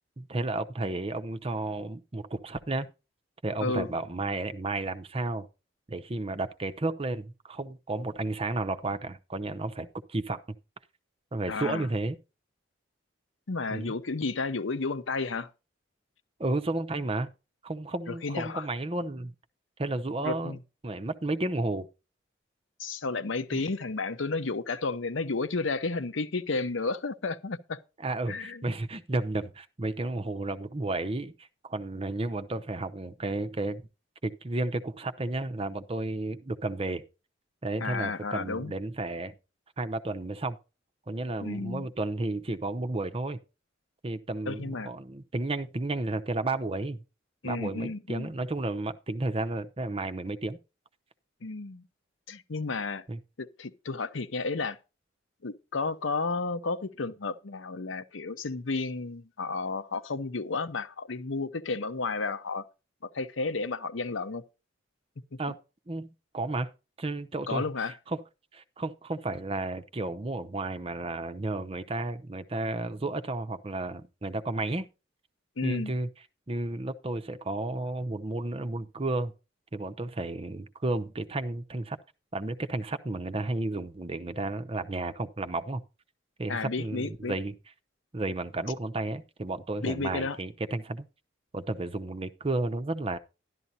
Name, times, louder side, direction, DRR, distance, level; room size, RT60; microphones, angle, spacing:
voice 1, 0.2-2.9 3.4-5.5 5.9-10.4 11.3-12.2 13.7-13.9 16.4-17.3 17.6-19.3 19.8-20.6 20.8-21.9 23.5-23.6 28.0-33.8 34.2-37.0 37.6-39.3 39.8-40.6 41.1-43.4 44.0-47.0 47.4-50.6 53.1-53.2 65.4-65.6 65.9-66.1 66.3-66.7 67.0-68.2 68.5-74.9 75.6-76.1 76.5-79.3 79.7-82.0 82.3-85.8 86.4-87.5 88.1-91.1 91.5-93.2, right 2 dB, 30° right, 0.7 m, -32 dB
voice 2, 11.5-11.9 13.5-15.5 18.1-18.6 20.2-20.6 22.8-27.8 28.3-28.7 37.8-38.8 41.4-41.9 44.5-44.9 47.4-48.3 51.4-51.8 52.3-53.0 53.4-54.8 55.4-62.7 63.0-64.4 65.3-65.4 67.5-67.9 75.6-75.9 86.5-87.4 89.8-90.4, left 3 dB, 80° left, 0.8 m, -32 dB
12.5 x 11.5 x 2.8 m
head